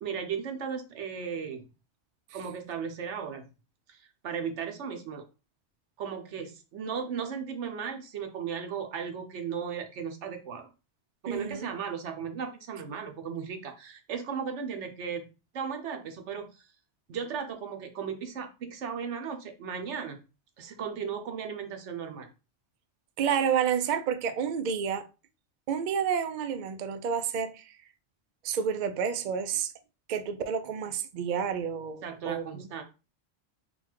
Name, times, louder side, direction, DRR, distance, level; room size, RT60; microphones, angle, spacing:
voice 1, 0.0-1.7 2.3-3.5 3.9-5.2 6.0-10.7 11.2-15.3 15.5-16.7 17.1-20.2 20.6-22.3 32.0-32.8, right 7 dB, 75° right, 1.1 m, -36 dB
voice 2, 11.3-11.7 23.2-25.1 25.7-27.8 28.4-29.7 30.1-32.8, right 7 dB, 60° right, 0.5 m, -30 dB
4.1 x 2.3 x 4.4 m
omnidirectional pair, 1.2 m